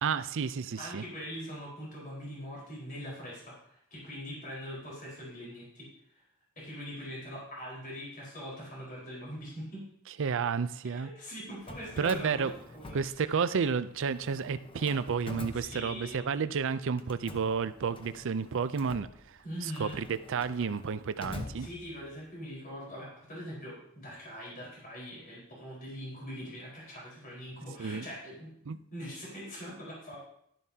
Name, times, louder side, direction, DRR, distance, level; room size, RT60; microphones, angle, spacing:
voice 1, 0.0-1.0 10.2-11.1 12.0-12.5 12.9-19.1 19.8-21.7 27.8-28.1 28.7-28.8, right 6 dB, 60° right, 13 dB, 0.5 m, -31 dB
voice 2, 0.8-5.9 6.6-9.9 11.0-13.4 15.5-16.3 19.4-20.0 21.6-30.2, equal, 40° left, -5 dB, 4.5 m, -42 dB
Drawer open or close, 11.5-13.7 14.0-16.4 17.0-22.2, left 2 dB, 25° left, 0.9 m, -47 dB
12.0 x 11.0 x 2.8 m, 0.71 s
head